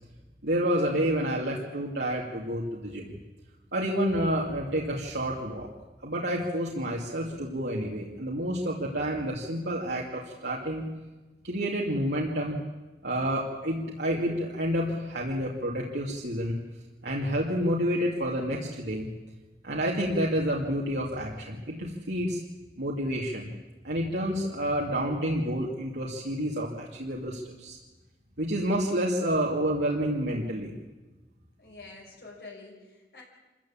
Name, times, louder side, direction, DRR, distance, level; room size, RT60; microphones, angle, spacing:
voice 1, 0.4-3.2 3.7-5.7 6.0-10.8 11.4-12.6 13.0-16.6 17.0-19.1 19.6-22.4 22.8-23.5 23.8-27.8 28.4-30.8, equal, 75° right, -3 dB, 2.5 m, -29 dB
voice 2, 31.6-33.2, left 3 dB, 60° left, -1 dB, 6.0 m, -47 dB
25.5 x 15.0 x 8.8 m, 1.2 s
head